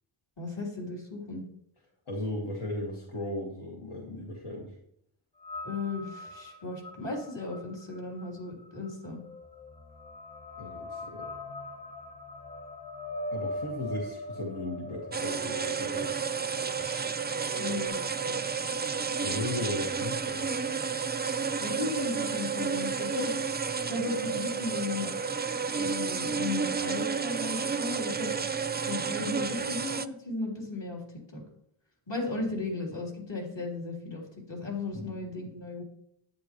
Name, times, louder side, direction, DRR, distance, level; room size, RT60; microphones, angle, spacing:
voice 1, 0.4-1.4 5.6-9.2 16.8-17.2 17.6-18.4 21.6-23.4 23.9-25.1 25.8-28.3 28.9-31.0 31.3-31.4 32.1-34.2 34.5-35.8, left 3 dB, 60° left, -2 dB, 3.2 m, -35 dB
voice 2, 2.1-4.7 10.6-11.3 13.3-16.1 19.2-20.6 29.4-29.6 34.9-35.2, left 1 dB, 85° left, -2 dB, 1.7 m, -36 dB
sound 1, 5.4-17.9, left 1 dB, 40° left, 2.3 m, -41 dB
sound 2, 15.1-30.1, right 5 dB, 25° right, 0.3 m, -31 dB
10.5 x 9.5 x 3.0 m, 0.73 s
wide cardioid pair, 80°, 49 cm